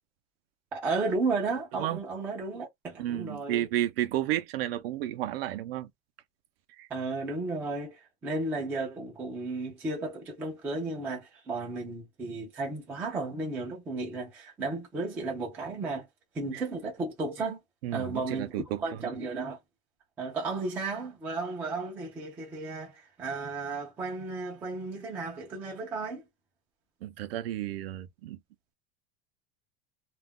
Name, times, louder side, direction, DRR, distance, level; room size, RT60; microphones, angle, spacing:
voice 1, 0.7-3.7 6.9-16.1 16.3-17.6 17.9-18.5 18.8-19.6 20.2-26.2, right 3 dB, 5° right, 0.3 m, -34 dB
voice 2, 3.0-5.9 6.7-6.9 16.5-16.6 17.8-19.0 27.0-28.4, right 13 dB, 70° right, 0.5 m, -32 dB
2.3 x 2.0 x 3.5 m
supercardioid pair, 175°, 31 cm